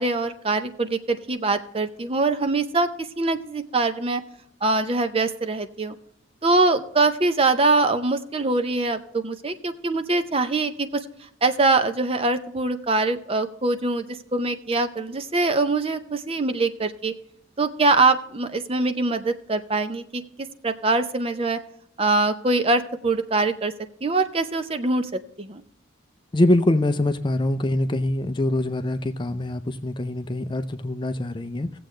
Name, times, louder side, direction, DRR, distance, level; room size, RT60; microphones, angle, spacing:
voice 1, 0.0-4.2 4.6-5.9 6.4-11.0 11.4-17.1 17.6-21.6 22.0-23.7 24.0-25.1 25.4-25.6, right 3 dB, 30° right, 9 dB, 0.5 m, -23 dB
voice 2, 26.3-31.8, left 1 dB, 25° left, 10 dB, 0.4 m, -24 dB
17.0 x 7.7 x 3.2 m, 0.74 s
head